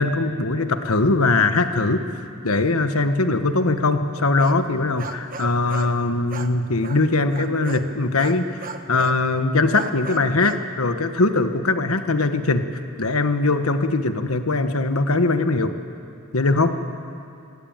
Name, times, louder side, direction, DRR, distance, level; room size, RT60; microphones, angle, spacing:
voice 1, 0.0-2.0 2.4-8.6 8.9-12.6 13.0-15.7 16.3-16.8, left 3 dB, 85° left, 8 dB, 1.4 m, -21 dB
sound 1, 4.2-6.0 6.3-7.9 8.2-9.2 9.7-10.6, right 4 dB, 40° right, 1.1 m, -36 dB
26.0 x 17.0 x 9.0 m, 2.6 s
head